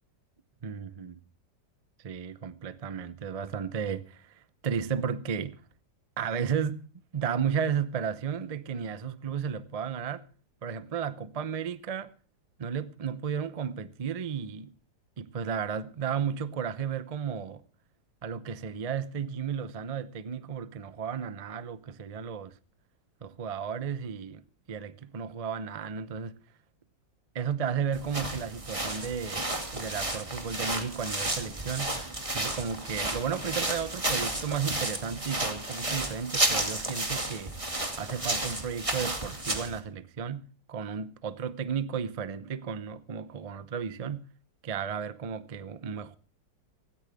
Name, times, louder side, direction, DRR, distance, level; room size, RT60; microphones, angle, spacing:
voice 1, 0.6-1.2 2.0-5.6 6.2-6.9 7.1-10.3 10.6-12.1 12.6-14.7 15.2-17.6 18.2-22.6 23.2-26.4 27.3-32.0 32.3-37.5 38.0-44.3 44.6-46.2, right 7 dB, 55° right, 0.4 m, -33 dB
sound 1, 27.9-39.8, right 1 dB, 15° right, 2.3 m, -32 dB
17.5 x 16.0 x 3.5 m
omnidirectional pair, 2.0 m